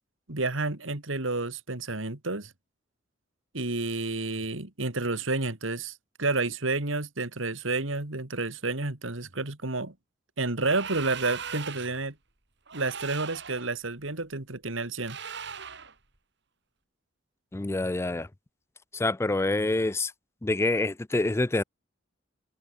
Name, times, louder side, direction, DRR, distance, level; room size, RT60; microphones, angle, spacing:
voice 1, 0.3-2.5 3.5-9.9 10.4-12.1 12.7-15.2, right 3 dB, 85° right, 2.5 m, -30 dB
sound 1, 10.6-12.1 12.7-13.7 15.0-15.9, right 7 dB, 65° right, 4.2 m, -39 dB
voice 2, 17.5-18.3 18.9-20.1 20.4-21.6, left 2 dB, 15° left, 0.4 m, -26 dB
open air
head